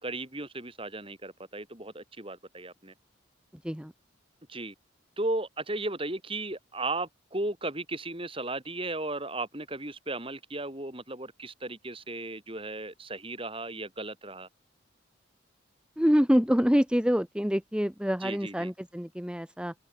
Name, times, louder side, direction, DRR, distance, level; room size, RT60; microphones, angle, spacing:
voice 1, 0.0-2.9 4.5-4.7 5.2-14.5 18.2-18.7, right 2 dB, 25° right, 5.1 m, -35 dB
voice 2, 16.0-19.7, equal, 5° right, 1.3 m, -26 dB
head